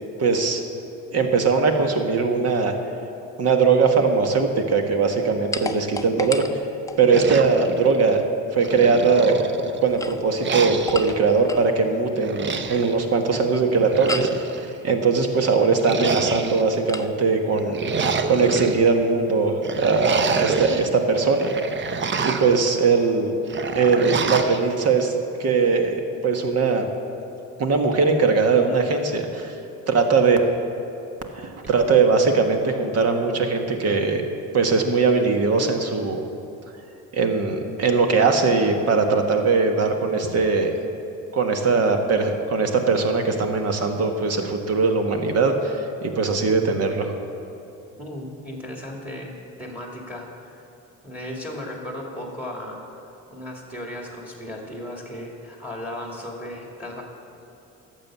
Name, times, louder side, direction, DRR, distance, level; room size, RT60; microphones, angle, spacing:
voice 1, 0.2-0.6 1.1-2.7 3.4-6.4 7.0-8.2 8.5-9.3 9.8-17.8 18.3-21.5 22.2-23.3 23.7-25.1 25.4-26.9 27.6-29.5 29.9-30.4 31.3-34.2 34.5-36.2 37.1-40.7 41.3-47.2, right 4 dB, 55° right, 4 dB, 1.5 m, -20 dB
sound 1, 5.5-7.3 9.8-11.7 14.1-14.4 16.9-17.1, left 3 dB, 10° left, 0.6 m, -33 dB
sound 2, 7.1-8.2 8.6-9.8 10.4-11.1 12.2-13.0 13.7-14.7 15.8-16.8 17.5-18.8 19.6-20.9 21.3-22.6 23.5-24.6, right 5 dB, 40° right, 0.8 m, -27 dB
voice 2, 48.0-49.3 49.6-50.6 51.0-57.0, left 1 dB, 5° right, 0 dB, 2.4 m, -36 dB
12.0 x 7.7 x 7.4 m, 2.9 s
cardioid pair, 95°, 30 cm